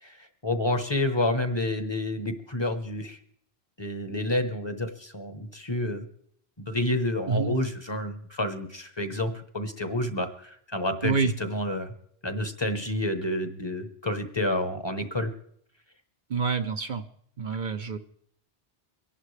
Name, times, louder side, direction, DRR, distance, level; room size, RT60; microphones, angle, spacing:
voice 1, 0.0-3.2 3.8-6.0 6.6-11.9 12.2-15.3, left 1 dB, 25° left, 8 dB, 1.1 m, -29 dB
voice 2, 16.3-17.0 17.4-18.0, right 5 dB, 55° right, 7 dB, 0.8 m, -27 dB
23.5 x 11.5 x 3.3 m, 0.65 s
omnidirectional pair, 1.0 m